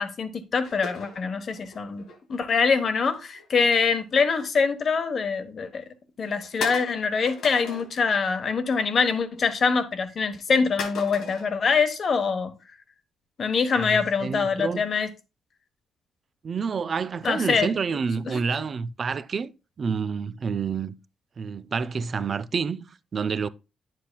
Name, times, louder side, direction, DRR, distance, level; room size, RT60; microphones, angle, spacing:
voice 1, 0.0-2.0 2.3-5.8 6.2-12.5 13.4-15.1 17.2-17.8 18.3-18.4, left 5 dB, 50° left, 1.1 m, -24 dB
sound 1, 0.6-2.2 2.8-4.1 4.4-4.7 5.2-5.3 5.9-6.0 6.6-8.1 8.4-8.8 9.1-9.8 10.8-11.5, left 4 dB, 75° left, 2.7 m, -38 dB
voice 2, 13.7-14.9 16.4-19.5 19.8-20.9 21.4-23.5, right 5 dB, 45° right, 0.4 m, -28 dB
10.0 x 7.5 x 2.2 m
cardioid pair, 90°, 0 cm